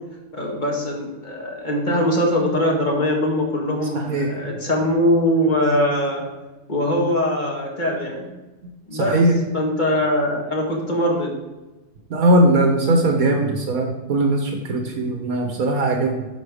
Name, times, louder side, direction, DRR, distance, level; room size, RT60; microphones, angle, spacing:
voice 1, 0.3-6.2 6.7-8.3 8.9-9.3 9.5-11.3, left 1 dB, 30° left, -1 dB, 2.0 m, -22 dB
voice 2, 3.9-4.3 8.9-9.3 12.1-16.3, right 1 dB, 70° right, 3 dB, 1.5 m, -19 dB
11.0 x 5.0 x 4.9 m, 1.1 s
omnidirectional pair, 1.6 m